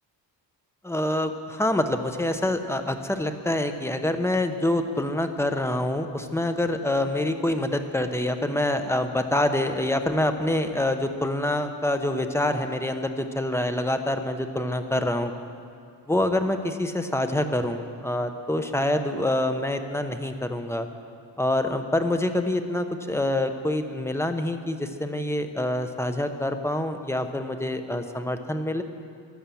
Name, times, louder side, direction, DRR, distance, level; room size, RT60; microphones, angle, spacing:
voice 1, 0.8-15.3 16.1-20.9 21.4-28.8, left 1 dB, 5° left, 7 dB, 0.9 m, -26 dB
15.0 x 11.0 x 7.1 m, 2.3 s
cardioid pair, 115°, 45 cm